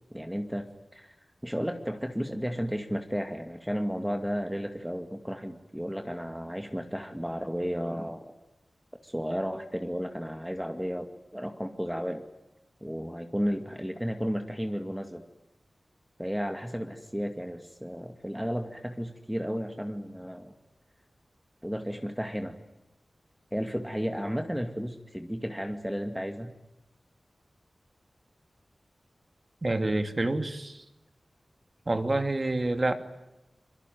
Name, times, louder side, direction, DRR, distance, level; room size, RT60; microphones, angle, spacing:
voice 1, 0.1-1.2 1.4-8.3 9.0-11.1 11.3-12.2 12.8-15.2 16.2-20.5 21.6-22.6 23.5-26.5, equal, 5° right, 6 dB, 2.3 m, -33 dB
voice 2, 29.6-30.8 31.9-32.9, right 2 dB, 35° right, 8 dB, 2.7 m, -27 dB
26.5 x 23.5 x 9.5 m, 0.96 s
wide cardioid pair, 75°, 0 cm